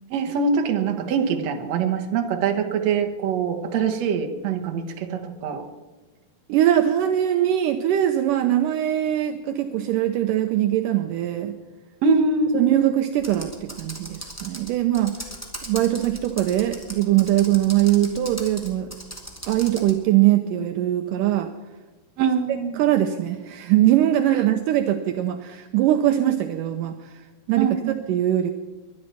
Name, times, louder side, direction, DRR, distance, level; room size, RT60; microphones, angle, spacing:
voice 1, 0.1-5.6 12.0-12.6 22.2-22.8 27.6-28.0, right 5 dB, 60° right, 5 dB, 2.0 m, -23 dB
voice 2, 6.5-11.6 12.5-15.2 15.6-18.9 19.5-21.5 22.5-28.5, right 12 dB, 80° right, 7 dB, 1.9 m, -22 dB
Computer keyboard, 13.2-20.0, equal, 5° left, 1.7 m, -38 dB
22.0 x 11.0 x 5.7 m, 1.3 s
omnidirectional pair, 4.5 m